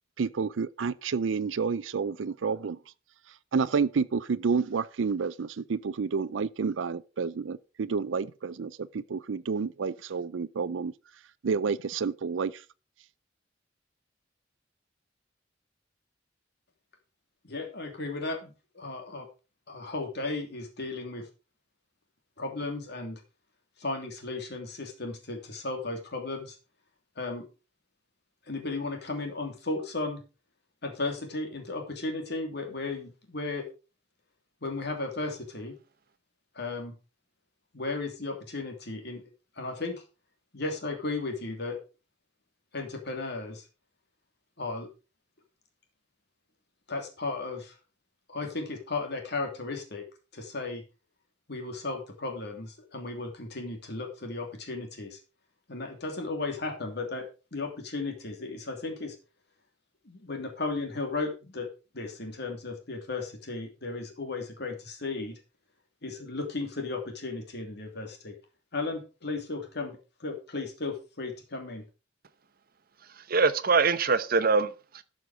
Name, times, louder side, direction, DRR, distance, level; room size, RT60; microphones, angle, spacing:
voice 1, 0.2-2.8 3.5-10.9 11.4-12.6, right 5 dB, 80° right, 0.5 m, -29 dB
voice 2, 17.4-19.3 19.7-21.3 22.4-23.2 23.8-26.6 27.2-27.5 28.5-30.2 30.8-33.7 34.6-35.7 36.5-37.0 37.7-39.3 39.6-40.0 40.5-41.8 42.7-43.7 44.6-44.9 46.9-47.8 48.3-50.0 50.3-50.8 51.5-55.2 55.7-59.2 60.0-61.7 61.9-65.4 66.0-68.3 68.7-71.8, left 3 dB, 60° left, 2.9 m, -35 dB
voice 3, 73.3-75.0, right 4 dB, 50° right, 0.8 m, -24 dB
12.5 x 6.3 x 4.9 m
head